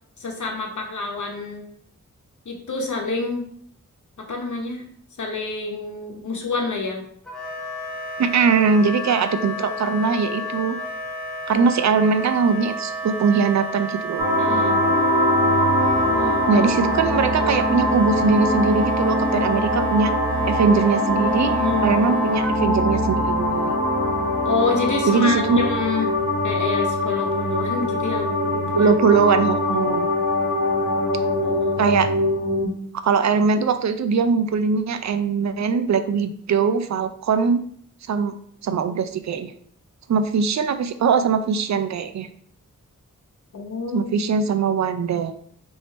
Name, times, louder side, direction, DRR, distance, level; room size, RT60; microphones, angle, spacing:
voice 1, 0.2-1.6 2.5-3.5 4.3-4.8 5.2-7.0 14.4-14.8 16.0-16.6 21.4-21.9 24.4-26.1 26.4-28.9 29.7-29.8 31.4-32.0 43.5-44.3, left 3 dB, 70° left, 1 dB, 0.9 m, -28 dB
Wind instrument woodwind instrument, 7.3-22.5, right 2 dB, 5° left, 1.1 m, -31 dB
voice 2, 8.2-10.8 11.5-14.3 16.5-20.1 20.4-21.5 21.8-23.8 25.1-25.6 28.8-30.1 31.8-32.1 33.0-37.6 38.1-38.3 38.6-39.5 40.1-42.3 43.9-45.3, right 5 dB, 60° right, 10 dB, 0.4 m, -21 dB
sound 1, 14.2-32.7, left 1 dB, 80° right, 1.0 m, -22 dB
3.2 x 2.7 x 4.3 m, 0.64 s
wide cardioid pair, 65°, 31 cm